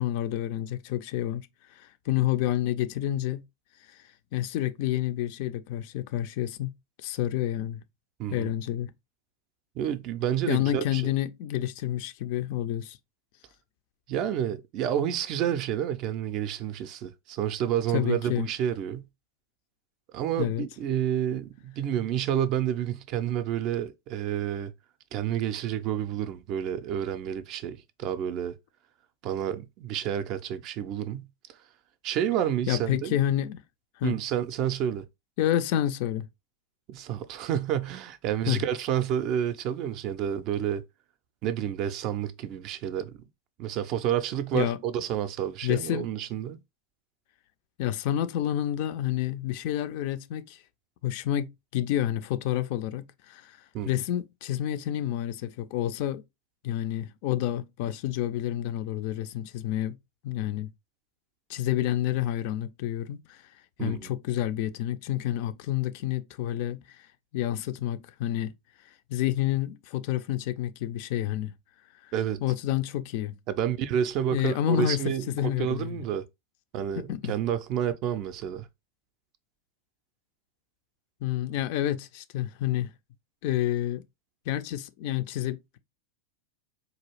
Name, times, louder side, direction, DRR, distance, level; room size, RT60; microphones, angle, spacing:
voice 1, 0.0-3.4 3.8-4.0 4.3-6.7 7.0-7.8 8.3-8.9 10.5-13.0 17.9-18.5 20.4-20.6 32.7-33.6 34.0-34.2 35.4-36.3 38.5-38.6 44.5-44.8 45.6-46.1 47.8-50.6 51.0-53.6 53.8-56.2 56.6-60.0 60.2-60.7 61.5-63.4 63.8-67.1 67.3-68.5 69.1-71.5 72.0-72.1 72.4-73.4 74.3-76.0 76.9-77.3 81.2-82.9 83.4-84.0 84.5-85.8, left 12 dB, 45° left, 0.3 m, -29 dB
voice 2, 9.8-11.1 14.1-19.1 20.1-24.7 25.1-28.5 29.2-31.3 32.0-33.2 34.0-35.1 36.9-40.8 41.4-43.2 43.6-46.6 53.7-54.0 63.8-64.1 72.1-72.4 73.5-76.2 76.7-78.7, right 10 dB, 40° right, 0.4 m, -29 dB
3.9 x 2.4 x 3.0 m
figure-of-eight pair, 90°, 0 cm